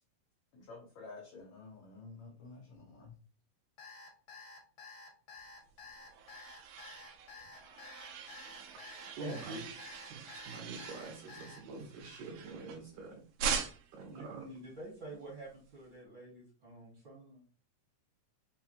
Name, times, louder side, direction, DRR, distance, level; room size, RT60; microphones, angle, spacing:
voice 1, 0.5-3.2 15.1-15.2, left 3 dB, 85° left, 0 dB, 1.5 m, -51 dB
Alarm, 3.8-11.6, left 3 dB, 70° left, 2.1 m, -51 dB
sound 1, 5.7-13.0 13.4-14.1, right 6 dB, 85° right, 2.3 m, -42 dB
voice 2, 7.5-8.0 9.2-9.6 11.6-11.9 12.3-12.4 14.1-17.4, right 1 dB, 50° right, -4 dB, 1.2 m, -47 dB
voice 3, 9.2-9.6 10.1-13.2 13.9-14.5, right 4 dB, 70° right, 0 dB, 1.8 m, -46 dB
5.5 x 2.2 x 2.6 m, 0.40 s
omnidirectional pair, 3.9 m